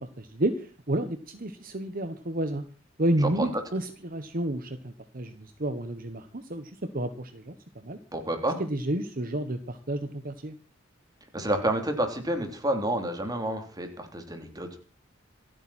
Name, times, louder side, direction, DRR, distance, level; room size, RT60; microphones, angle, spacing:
voice 1, 0.0-2.6 3.0-8.0 8.6-10.6, right 1 dB, 45° right, 9 dB, 1.2 m, -31 dB
voice 2, 3.2-3.5 8.1-8.6 11.3-14.8, right 1 dB, 20° right, 5 dB, 3.2 m, -29 dB
27.0 x 9.2 x 4.3 m, 0.38 s
head